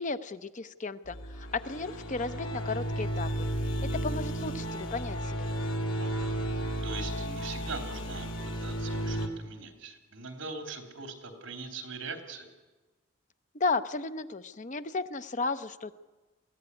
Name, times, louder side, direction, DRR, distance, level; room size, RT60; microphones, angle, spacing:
voice 1, 0.0-3.5 4.0-5.5 13.5-15.9, left 3 dB, 40° left, 12 dB, 0.7 m, -34 dB
sound 1, 1.1-9.3, equal, 85° left, 2.8 m, -33 dB
voice 2, 6.0-8.3 8.6-12.5, right 4 dB, 65° right, 5 dB, 3.3 m, -42 dB
22.0 x 16.0 x 9.7 m, 1.2 s
head